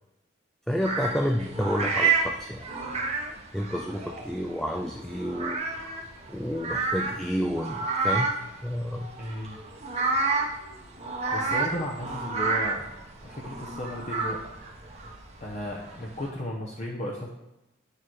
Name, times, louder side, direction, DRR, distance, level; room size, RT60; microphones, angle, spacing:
voice 1, 0.7-2.6 3.5-6.0 6.3-8.3 8.6-9.1 11.2-11.4, equal, ahead, 2 dB, 0.4 m, -30 dB
sound 1, 0.8-16.3, right 4 dB, 35° right, 1.2 m, -30 dB
voice 2, 9.2-9.6 11.3-12.8 13.2-14.4 15.4-17.3, left 1 dB, 35° left, -3 dB, 1.0 m, -34 dB
9.2 x 6.7 x 4.8 m, 0.93 s
head